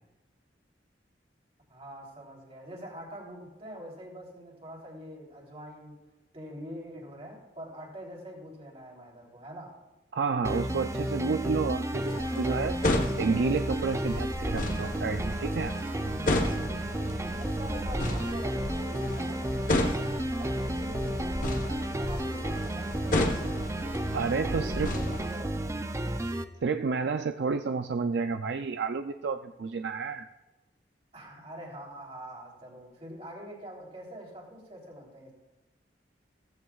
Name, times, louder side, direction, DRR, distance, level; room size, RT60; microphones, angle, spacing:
voice 1, 1.7-6.0 6.3-9.8 17.4-20.1 20.4-24.0 24.4-25.8 31.1-35.3, equal, 35° right, -2 dB, 3.3 m, -44 dB
voice 2, 10.1-12.7 13.2-15.7 24.1-24.9 26.6-30.3, right 5 dB, 70° right, 7 dB, 0.4 m, -30 dB
sound 1, 10.4-26.4, right 1 dB, 15° right, 0.5 m, -32 dB
sound 2, 12.0-25.4, left 1 dB, 45° left, 1.1 m, -33 dB
16.0 x 14.5 x 2.4 m, 1.1 s
head